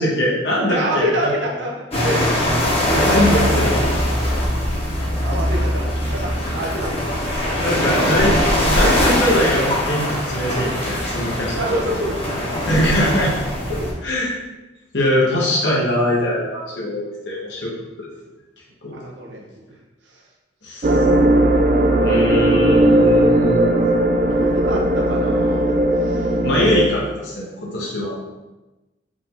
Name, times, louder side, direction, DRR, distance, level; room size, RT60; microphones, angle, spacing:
voice 1, 0.0-1.3 3.0-3.8 7.6-8.3 8.6-11.6 12.7-13.3 14.0-14.4 14.9-17.7 18.8-19.0 20.6-21.0 22.0-23.7 26.4-28.1, equal, 70° left, -4 dB, 1.1 m, -21 dB
voice 2, 0.7-2.2 3.3-3.4 5.2-6.9 7.7-7.9 11.5-12.5 13.7-13.9 18.9-19.6 21.9-22.2 24.2-25.7 26.0-26.3 26.6-26.8, right 1 dB, 75° right, -1 dB, 0.8 m, -27 dB
sound 1, 1.9-13.9, equal, 30° left, 1.1 m, -21 dB
sound 2, 20.8-26.9, right 1 dB, 45° right, 0.3 m, -17 dB
5.1 x 2.7 x 3.7 m, 1.1 s
head